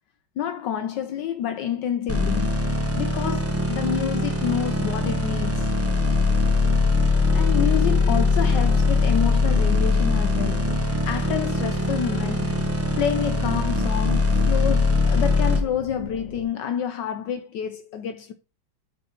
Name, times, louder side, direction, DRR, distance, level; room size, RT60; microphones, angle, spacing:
voice 1, 0.4-2.5 3.0-5.7 7.3-12.6 13.0-18.3, left 9 dB, 70° left, 1.2 m, -28 dB
sound 1, 2.1-15.6, left 3 dB, 15° right, 0.5 m, -22 dB
sound 2, 5.0-16.5, left 1 dB, 30° left, 1.2 m, -39 dB
5.6 x 4.1 x 5.8 m
omnidirectional pair, 2.2 m